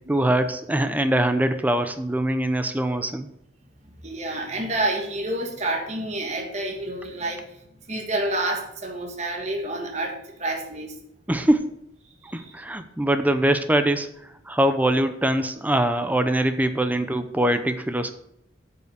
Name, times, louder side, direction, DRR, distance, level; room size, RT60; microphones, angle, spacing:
voice 1, 0.1-3.3 11.3-11.7 12.3-14.1 14.5-18.1, right 1 dB, 10° right, 9 dB, 0.6 m, -23 dB
voice 2, 4.0-7.6 7.9-11.0 12.2-12.5, right 1 dB, 40° right, 1 dB, 1.5 m, -29 dB
9.1 x 5.6 x 6.5 m, 0.76 s
head